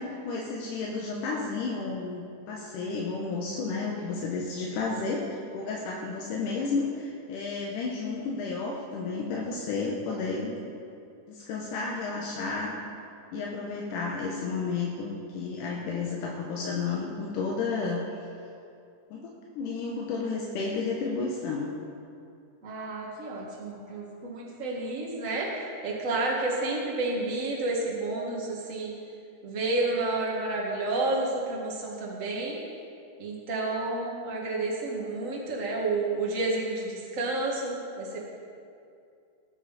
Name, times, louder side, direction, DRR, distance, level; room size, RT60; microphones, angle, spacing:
voice 1, 0.0-10.6 11.3-12.8 13.3-18.0 19.1-21.7, left 4 dB, 70° left, -2 dB, 2.2 m, -32 dB
voice 2, 22.6-28.9 29.4-32.6 33.2-38.2, right 2 dB, 40° right, -3 dB, 1.1 m, -30 dB
18.5 x 9.2 x 4.1 m, 2.5 s
omnidirectional pair, 4.7 m